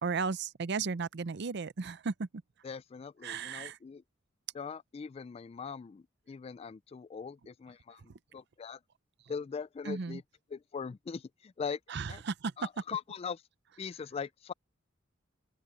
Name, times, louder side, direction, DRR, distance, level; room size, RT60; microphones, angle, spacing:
voice 1, 0.0-2.3 3.2-3.8 9.8-10.2 11.9-12.5, right 5 dB, 60° right, 0.6 m, -35 dB
voice 2, 2.6-4.0 4.5-8.8 9.3-10.2 10.5-11.8 12.1-12.2 12.6-13.4 13.8-14.5, left 6 dB, 30° left, 0.3 m, -41 dB
open air
head